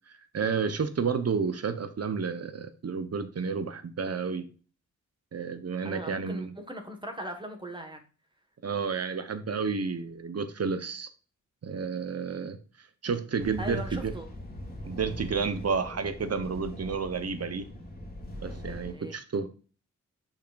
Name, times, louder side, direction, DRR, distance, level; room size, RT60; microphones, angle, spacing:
voice 1, 0.3-4.4 5.3-6.5 8.6-11.1 11.6-12.6 13.0-14.1 14.8-17.7 18.4-19.5, right 5 dB, 55° right, 10 dB, 1.0 m, -31 dB
voice 2, 5.8-8.0 13.6-14.3 18.9-19.2, equal, 15° right, 4 dB, 1.6 m, -39 dB
sound 1, 13.4-18.9, equal, 30° left, 2.4 m, -41 dB
7.0 x 5.8 x 2.5 m, 0.36 s
wide cardioid pair, 95°, 30 cm